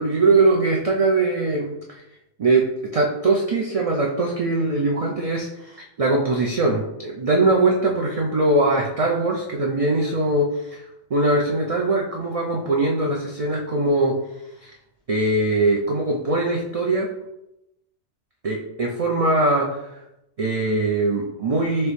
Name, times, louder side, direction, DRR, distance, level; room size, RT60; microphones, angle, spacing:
voice 1, 0.0-2.0 2.4-14.2 14.6-14.7 15.1-17.1 18.4-20.0 20.4-21.9, right 2 dB, 65° right, -1 dB, 0.3 m, -21 dB
4.5 x 3.0 x 3.1 m, 0.88 s
omnidirectional pair, 1.2 m